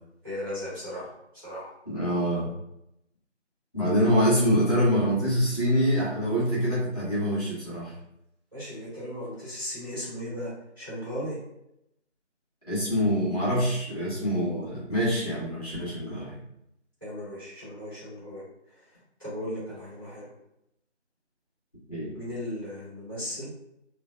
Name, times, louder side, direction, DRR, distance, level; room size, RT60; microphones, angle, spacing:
voice 1, 0.2-1.7 8.5-11.4 17.0-20.3 22.1-23.5, equal, 20° right, -14 dB, 1.3 m, -37 dB
voice 2, 1.9-2.5 3.7-7.9 12.7-16.3 21.9-22.1, equal, 35° left, -10 dB, 1.2 m, -25 dB
3.2 x 2.3 x 2.5 m, 0.81 s
figure-of-eight pair, 170°, 36 cm